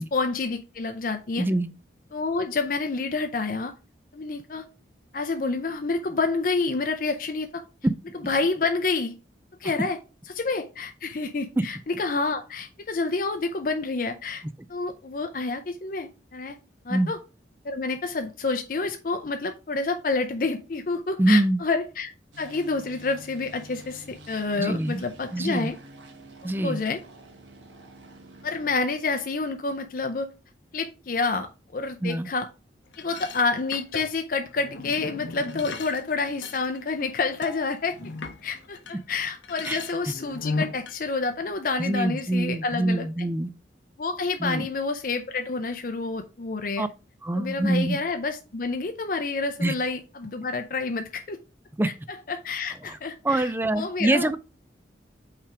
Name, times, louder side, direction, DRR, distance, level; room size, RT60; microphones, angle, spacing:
voice 1, 0.1-1.5 2.1-3.7 4.1-4.6 5.1-7.6 8.2-9.1 9.6-10.0 10.3-14.4 14.7-16.6 16.9-17.2 17.6-22.1 22.4-25.7 26.4-27.0 28.4-30.3 30.7-32.5 33.0-38.0 38.4-43.1 44.0-46.9 47.3-51.4 52.3-54.3, left 3 dB, 50° left, 0.5 m, -28 dB
voice 2, 1.4-1.7 7.8-7.9 11.6-11.7 16.9-17.1 21.2-21.6 24.6-25.0 25.3-25.7 26.4-26.8 32.0-32.3 39.7-39.8 41.8-43.5 44.4-44.7 46.8-46.9 47.2-48.0 49.6-49.7 51.8-51.9 52.8-53.0 53.2-54.4, right 1 dB, 10° right, 0.3 m, -24 dB
sound 1, 22.3-28.7, right 1 dB, 90° right, 1.4 m, -48 dB
sound 2, 32.9-39.0 39.3-41.0, left 3 dB, 80° left, 0.8 m, -36 dB
5.7 x 3.4 x 4.9 m
head